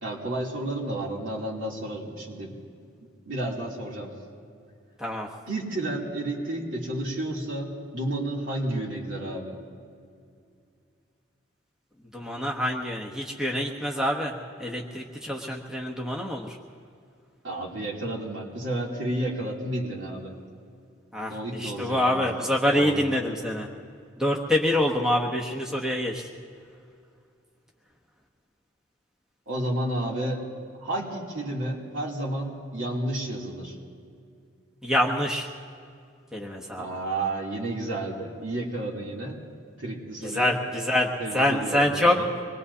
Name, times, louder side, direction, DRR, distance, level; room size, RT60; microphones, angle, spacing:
voice 1, 0.0-2.5 3.2-4.1 5.5-9.6 17.4-20.3 21.3-22.2 22.7-23.0 29.5-30.4 30.8-33.8 36.8-39.4 39.8-40.6 41.2-42.3, right 1 dB, 70° right, -3 dB, 3.0 m, -31 dB
voice 2, 12.1-16.6 21.1-23.7 24.2-26.3 34.8-35.5 36.3-36.9 40.2-41.1 41.3-42.2, left 1 dB, 5° right, -1 dB, 1.0 m, -26 dB
25.0 x 20.5 x 2.8 m, 2.4 s
head